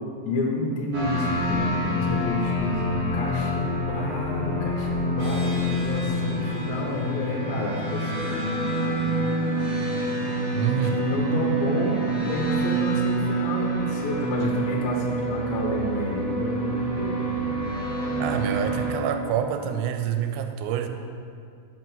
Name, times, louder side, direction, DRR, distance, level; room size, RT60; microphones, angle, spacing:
voice 1, 0.2-8.4 10.8-17.3, left 2 dB, 85° left, -1 dB, 2.4 m, -29 dB
sound 1, 0.9-19.0, right 1 dB, 50° right, 2.6 m, -27 dB
voice 2, 10.5-11.1 18.2-20.9, right 9 dB, 90° right, 7 dB, 2.4 m, -27 dB
5.6 x 5.2 x 5.4 m, 2.3 s
omnidirectional pair, 4.1 m